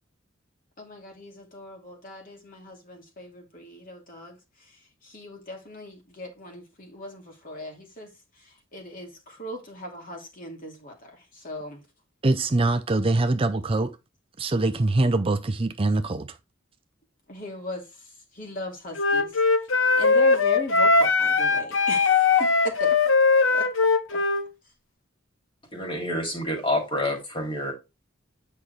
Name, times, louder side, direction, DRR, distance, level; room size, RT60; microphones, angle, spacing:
voice 1, 0.8-4.4 5.0-8.1 8.4-11.8 17.3-17.9 18.3-19.3 20.0-23.0 23.5-23.7 24.1-24.2, left 1 dB, 45° left, 2.3 m, -38 dB
voice 2, 12.2-14.0 14.4-16.4, right 2 dB, 30° right, 0.5 m, -23 dB
Wind instrument woodwind instrument, 19.0-24.4, left 4 dB, 70° left, 0.9 m, -20 dB
voice 3, 25.7-27.7, left 1 dB, 25° left, 2.7 m, -28 dB
8.6 x 5.6 x 3.2 m
head